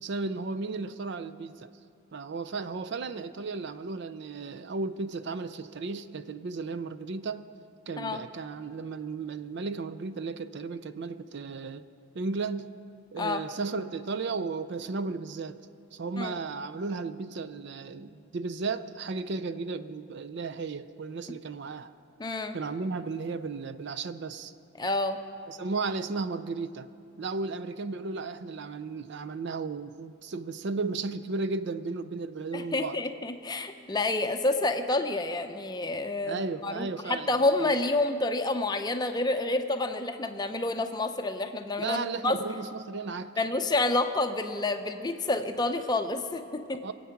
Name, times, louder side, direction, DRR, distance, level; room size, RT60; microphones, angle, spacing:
voice 1, 0.0-1.7 2.1-7.5 7.9-11.9 12.1-12.7 13.1-15.6 15.9-21.9 22.5-24.5 25.5-26.9 27.2-33.0 36.2-37.8 41.8-43.3 46.8-46.9, right 4 dB, 50° right, 12 dB, 0.4 m, -34 dB
voice 2, 22.2-22.6 24.8-25.2 32.5-42.4 43.4-46.8, left 2 dB, 20° left, 6 dB, 0.6 m, -29 dB
24.0 x 8.5 x 5.8 m, 2.5 s
head